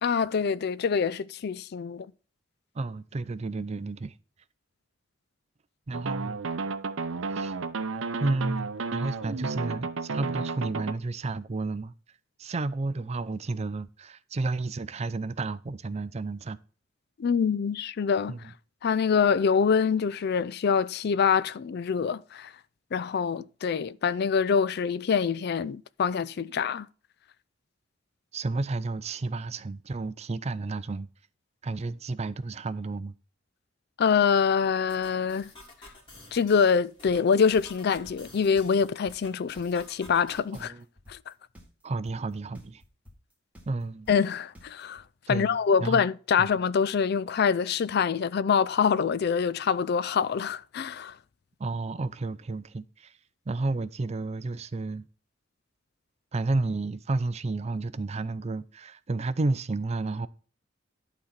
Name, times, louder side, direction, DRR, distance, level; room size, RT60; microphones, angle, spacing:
voice 1, 0.0-2.1 17.2-18.4 18.8-22.5 22.9-26.9 34.0-35.5 36.3-40.7 41.1-41.3 44.1-45.0 45.3-51.1, left 6 dB, 55° left, 0.4 m, -25 dB
voice 2, 2.7-4.1 5.9-6.4 7.3-7.5 8.2-11.9 12.4-16.6 18.3-18.5 28.3-31.1 31.6-33.1 40.5-40.8 41.8-42.8 43.7-44.1 45.3-46.1 46.4-46.5 51.6-53.1 53.5-55.1 56.3-60.3, right 3 dB, 35° right, 0.4 m, -31 dB
sound 1, 5.9-10.9, right 4 dB, 85° right, 0.7 m, -32 dB
sound 2, 34.9-40.6, left 2 dB, 25° left, 2.7 m, -51 dB
sound 3, 37.1-45.0, left 1 dB, 5° right, 1.9 m, -51 dB
11.5 x 4.0 x 5.8 m
head